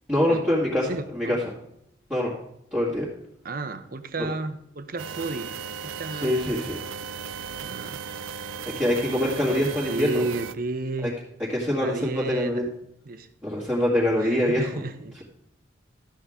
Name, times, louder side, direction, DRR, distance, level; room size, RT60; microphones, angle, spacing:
voice 1, 0.1-1.4 2.1-2.3 2.7-3.1 6.1-6.8 8.8-10.2 11.0-11.1 11.5-12.7 13.4-14.8, left 1 dB, 5° right, 2.1 m, -24 dB
voice 2, 0.9-1.4 3.4-5.6 5.8-6.4 7.6-8.0 9.5-11.2 11.8-12.7 13.1-13.3 14.2-15.2, right 2 dB, 50° right, 0.7 m, -32 dB
sound 1, 5.0-10.5, right 7 dB, 85° right, 0.4 m, -36 dB
13.0 x 8.1 x 3.6 m
head